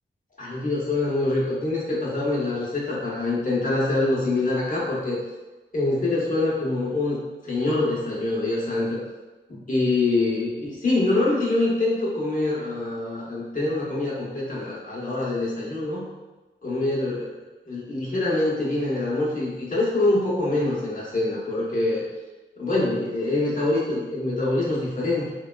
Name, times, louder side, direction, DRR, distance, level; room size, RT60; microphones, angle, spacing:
voice 1, 0.4-5.2 5.7-7.2 7.4-9.0 9.5-16.0 16.6-17.2 17.7-22.0 22.6-25.3, left 2 dB, 40° left, -7 dB, 1.0 m, -25 dB
3.3 x 2.3 x 2.3 m, 1.1 s
cardioid pair, 55°, 21 cm